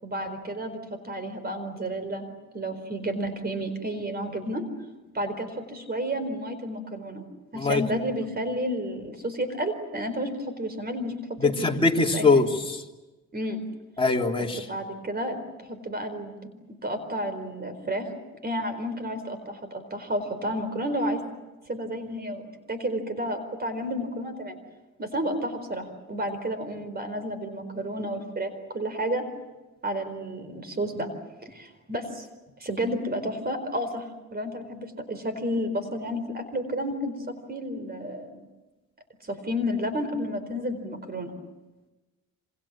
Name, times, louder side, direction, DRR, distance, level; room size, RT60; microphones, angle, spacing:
voice 1, 0.0-4.6 5.1-7.3 7.5-11.8 12.1-12.5 13.3-13.6 14.7-18.1 18.4-21.2 21.7-24.6 25.0-29.2 29.8-31.1 31.4-32.3 32.6-34.0 34.3-38.4 39.2-41.4, equal, 30° right, 10 dB, 4.3 m, -31 dB
voice 2, 11.4-12.8 14.0-14.7, left 3 dB, 20° left, 0 dB, 3.4 m, -22 dB
28.0 x 26.5 x 7.5 m, 1.1 s
cardioid pair, 90°, 30 cm